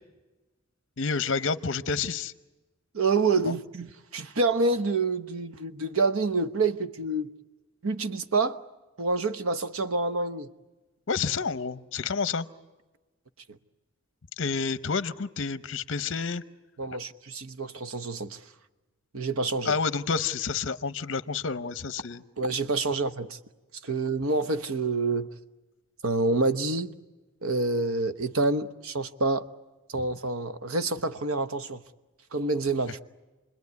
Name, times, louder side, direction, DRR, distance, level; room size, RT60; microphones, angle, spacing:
voice 1, 1.0-2.3 3.5-3.6 11.1-12.4 14.4-16.4 19.6-22.2, left 5 dB, 60° left, 0.8 m, -29 dB
voice 2, 2.9-7.3 7.8-8.6 9.0-10.5 16.8-18.4 19.1-19.8 22.4-23.4 23.8-25.3 26.0-26.9 27.4-29.4 29.9-31.8 32.3-33.0, right 3 dB, 80° right, 1.0 m, -27 dB
29.0 x 21.0 x 9.5 m
head